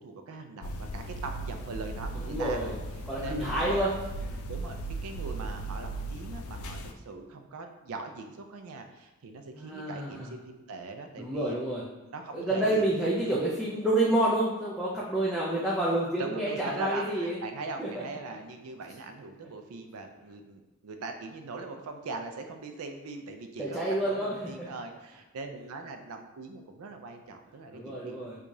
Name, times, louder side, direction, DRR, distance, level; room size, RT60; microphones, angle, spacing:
voice 1, 0.0-2.8 3.2-3.9 4.3-4.8 5.0-11.6 12.0-13.4 15.2-15.6 16.2-28.3, right 3 dB, 75° right, 5 dB, 0.4 m, -41 dB
sound 1, 0.6-6.9, right 2 dB, 70° left, 0.3 m, -37 dB
voice 2, 2.1-2.8 3.1-3.9 9.6-10.3 11.2-11.8 12.3-17.4 17.8-17.9 23.6-24.3 27.7-28.4, right 1 dB, ahead, -7 dB, 0.4 m, -28 dB
4.7 x 2.4 x 2.6 m, 1.1 s
head